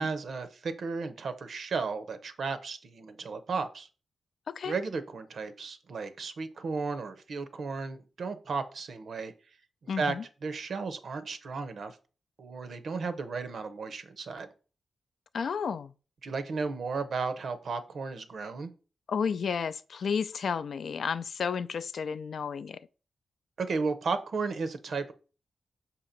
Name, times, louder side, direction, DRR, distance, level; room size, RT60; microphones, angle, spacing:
voice 1, 0.0-3.9 4.6-9.3 9.8-10.1 10.4-12.0 12.4-14.5 16.2-18.7 23.6-25.1, right 4 dB, 60° right, 0.7 m, -34 dB
voice 2, 9.9-10.2 15.3-15.9 19.1-22.8, left 6 dB, 65° left, 0.3 m, -32 dB
6.4 x 2.9 x 5.1 m
wide cardioid pair, 125°, 0 cm